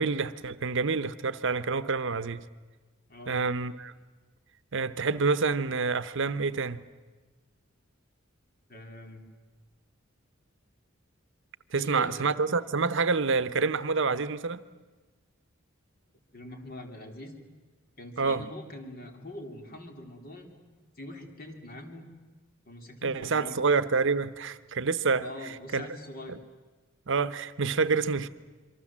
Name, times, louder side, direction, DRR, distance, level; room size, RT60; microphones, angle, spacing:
voice 1, 0.0-2.4 3.3-3.9 4.7-6.8 11.7-14.6 18.2-18.4 23.0-25.9 27.1-28.3, right 4 dB, 65° right, 0.8 m, -27 dB
voice 2, 8.7-9.2 11.7-12.3 16.3-17.4 18.0-20.6 21.0-22.1 22.7-23.6 25.2-26.4, left 1 dB, 45° left, 3.2 m, -43 dB
27.0 x 24.0 x 7.4 m
head